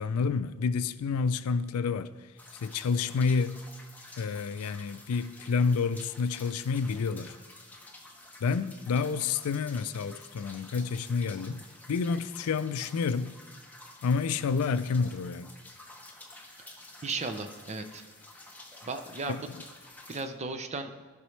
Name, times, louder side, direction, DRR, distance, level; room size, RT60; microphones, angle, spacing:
voice 1, 0.0-2.1 2.6-3.6 4.2-7.3 8.4-13.3 14.0-15.5 19.3-19.4, left 5 dB, 90° left, 0.4 m, -29 dB
sound 1, 2.4-20.2, left 2 dB, 10° left, 0.8 m, -50 dB
voice 2, 17.0-18.0 18.8-19.5 20.1-20.9, right 3 dB, 30° right, 0.5 m, -35 dB
15.5 x 5.3 x 3.2 m
head